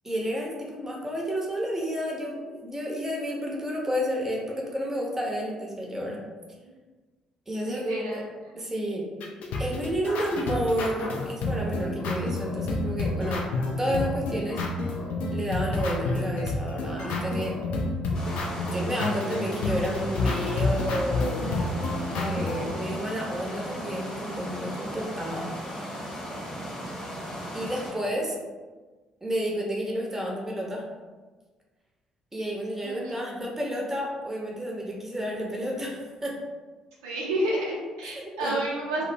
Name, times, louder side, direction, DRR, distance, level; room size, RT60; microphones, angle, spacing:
voice 1, 0.0-6.2 7.5-8.2 8.6-9.1 9.6-13.5 13.8-14.6 15.3-17.6 18.6-21.8 22.1-26.0 27.5-28.4 29.2-30.8 32.3-36.4 38.0-38.6, equal, 15° right, -2 dB, 0.6 m, -31 dB
voice 2, 7.6-8.3 32.8-33.2 37.0-39.0, right 1 dB, 75° right, -5 dB, 0.5 m, -30 dB
sound 1, 9.2-22.7, left 2 dB, 60° left, 0.4 m, -29 dB
sound 2, 18.1-27.9, equal, 35° left, 0.8 m, -36 dB
2.1 x 2.0 x 3.1 m, 1.3 s
figure-of-eight pair, 45°, 3 cm